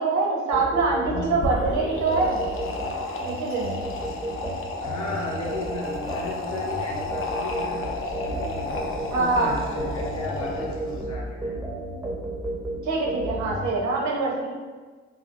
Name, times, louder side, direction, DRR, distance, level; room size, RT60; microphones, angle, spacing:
voice 1, 0.0-2.4 3.2-3.7 9.1-9.5 12.8-14.5, right 3 dB, 85° right, -2 dB, 0.7 m, -24 dB
sound 1, 0.5-13.7, right 1 dB, 10° right, 0.5 m, -33 dB
voice 2, 1.0-1.4 4.8-7.9 8.2-11.6, left 2 dB, 75° left, -5 dB, 0.8 m, -35 dB
sound 2, 1.3-11.0, left 3 dB, 45° left, 0.4 m, -32 dB
2.6 x 2.0 x 2.7 m, 1.4 s
cardioid pair, 70°, 29 cm